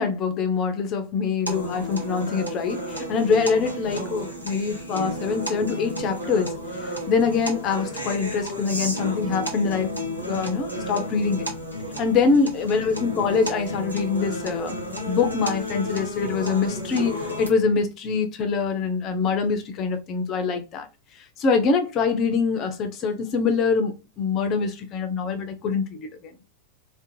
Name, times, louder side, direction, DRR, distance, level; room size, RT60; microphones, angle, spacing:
voice 1, 0.0-6.5 7.1-9.9 10.2-11.4 12.0-14.7 15.1-20.9 21.1-26.3, left 5 dB, 35° left, 0.4 m, -24 dB
sound 1, 1.5-17.5, equal, 85° right, 0.7 m, -32 dB
2.5 x 2.1 x 2.6 m
figure-of-eight pair, 90°, 0 cm